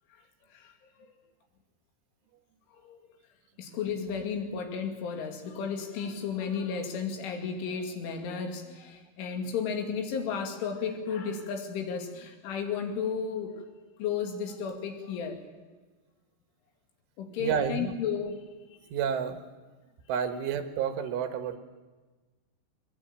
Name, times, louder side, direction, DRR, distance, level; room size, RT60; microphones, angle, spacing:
voice 1, 3.6-13.6 14.0-15.4 17.2-18.4, left 6 dB, 85° left, 4 dB, 4.8 m, -33 dB
voice 2, 17.4-17.9 18.9-19.4 20.1-21.6, right 7 dB, 85° right, 8 dB, 3.9 m, -30 dB
22.0 x 20.0 x 8.9 m, 1.3 s
omnidirectional pair, 5.4 m